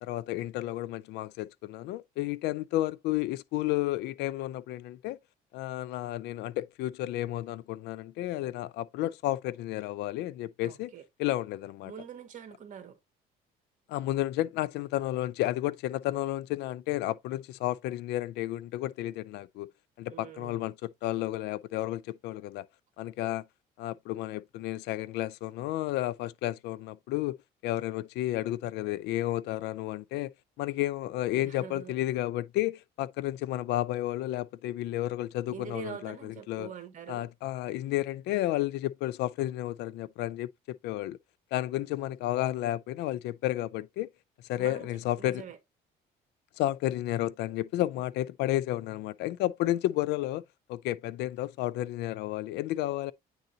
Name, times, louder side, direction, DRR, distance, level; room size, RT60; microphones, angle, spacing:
voice 1, 0.0-5.2 5.5-10.9 11.2-11.9 13.9-19.7 20.0-22.7 23.0-23.4 23.8-27.4 27.6-30.3 30.6-36.7 37.1-41.2 41.5-44.1 44.5-45.4 46.6-50.4 50.7-53.1, left 15 dB, 85° left, 0.5 m, -32 dB
voice 2, 10.6-11.1 11.8-13.0 20.1-20.7 31.4-31.9 35.5-37.3 44.6-44.9 45.2-45.6, right 8 dB, 50° right, 1.8 m, -44 dB
9.0 x 3.9 x 2.8 m
cardioid pair, 110°, 17 cm